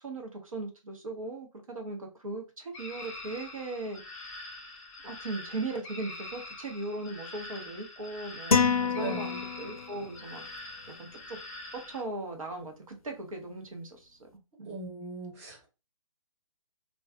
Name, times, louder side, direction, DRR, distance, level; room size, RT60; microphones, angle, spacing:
voice 1, 0.0-4.0 5.0-9.3 9.6-10.7 11.0-11.4 11.9-14.3 14.6-14.7, right 2 dB, 70° right, 3 dB, 0.9 m, -38 dB
sound 1, 2.7-12.0, left 2 dB, 15° left, 0.4 m, -44 dB
sound 2, 8.5-10.0, left 5 dB, 85° left, 0.4 m, -27 dB
voice 2, 8.9-9.5 14.6-15.7, right 4 dB, 25° right, -1 dB, 0.9 m, -39 dB
2.4 x 2.3 x 2.2 m, 0.29 s
figure-of-eight pair, 135°, 18 cm